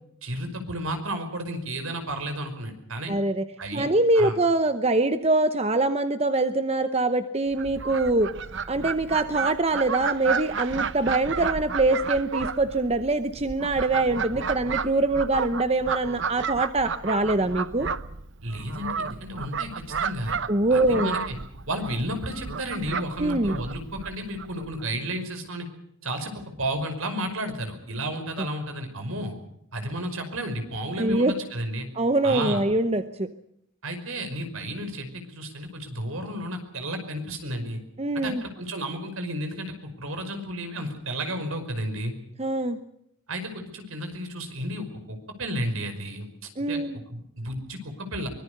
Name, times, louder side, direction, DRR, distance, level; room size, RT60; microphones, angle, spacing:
voice 1, 0.2-3.1 3.6-3.9 4.2-4.3 18.4-20.4 20.7-21.4 21.7-25.7 26.0-29.4 29.7-31.9 32.2-32.6 33.8-37.8 38.1-42.1 43.3-46.3 46.7-46.8 47.1-48.3, right 1 dB, 70° right, 7 dB, 5.4 m, -32 dB
voice 2, 3.1-3.4 3.7-8.3 8.7-17.9 20.5-21.1 23.2-23.6 31.0-31.3 31.9-33.3 38.0-38.4 42.4-42.8 46.6-47.0, right 2 dB, 30° right, 10 dB, 0.9 m, -24 dB
Fowl, 7.5-24.8, right 5 dB, 55° right, 0.9 m, -32 dB
24.0 x 21.0 x 6.6 m, 0.71 s
head